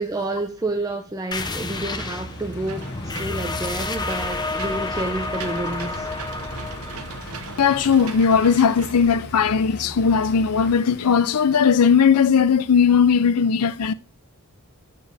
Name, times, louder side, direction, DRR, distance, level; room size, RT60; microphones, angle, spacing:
voice 1, 0.0-6.1, right 2 dB, 15° right, 0.7 m, -29 dB
sound 1, 1.3-10.5, left 3 dB, 20° left, 0.8 m, -31 dB
Engine / Mechanisms, 1.8-10.7, right 4 dB, 70° right, 1.0 m, -38 dB
sound 2, 1.9-11.9, left 3 dB, 50° left, 1.0 m, -42 dB
voice 2, 7.6-13.9, left 6 dB, 85° left, 0.6 m, -18 dB
13.5 x 4.6 x 3.3 m
head